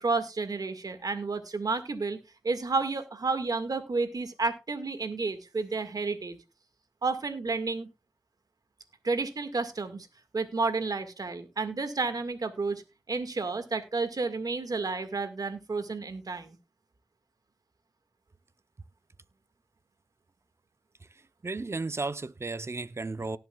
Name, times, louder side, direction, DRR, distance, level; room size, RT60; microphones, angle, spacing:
voice 1, 0.0-2.2 2.4-6.4 7.0-7.9 9.0-10.1 10.3-12.8 13.1-16.6, right 3 dB, 70° right, 1.8 m, -31 dB
voice 2, 21.4-23.4, right 3 dB, 40° right, 0.7 m, -34 dB
18.5 x 7.8 x 2.3 m
cardioid pair, 50°, 7 cm